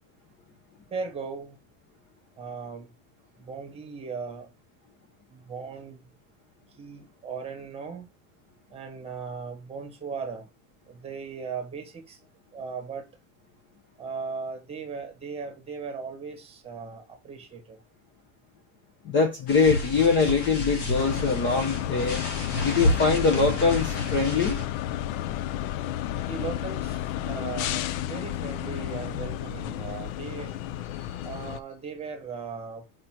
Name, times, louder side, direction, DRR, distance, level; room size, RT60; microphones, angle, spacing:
voice 1, 0.9-1.6 2.4-2.9 3.4-4.5 5.3-6.0 6.7-8.1 8.7-10.5 10.9-12.2 12.5-13.1 14.0-17.8 26.2-30.6 31.2-32.8, right 5 dB, 15° right, 1.5 m, -37 dB
voice 2, 19.0-22.2 22.6-24.6, left 4 dB, 30° left, 0.8 m, -23 dB
sound 1, 19.5-24.7, left 1 dB, 60° left, 2.1 m, -30 dB
sound 2, 20.9-31.6, left 12 dB, 90° left, 0.6 m, -32 dB
5.0 x 4.2 x 4.5 m
cardioid pair, 170°, 41 cm